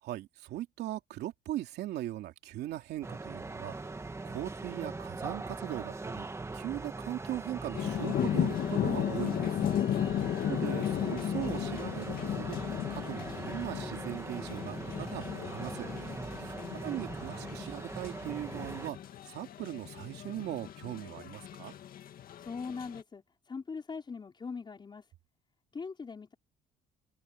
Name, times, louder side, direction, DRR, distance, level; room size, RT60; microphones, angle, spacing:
voice 1, 0.0-6.3 6.5-9.6 10.4-15.9 16.4-16.5 16.8-19.0 19.3-21.7, right 14 dB, 75° right, 2.9 m, -39 dB
sound 1, 3.0-18.9, right 3 dB, 15° right, 1.8 m, -41 dB
sound 2, 7.7-23.0, left 10 dB, 60° left, 1.9 m, -35 dB
voice 2, 10.1-10.7 16.5-17.1 22.4-25.1 25.7-26.3, left 5 dB, 25° left, 5.0 m, -42 dB
cardioid pair, 110°, 17 cm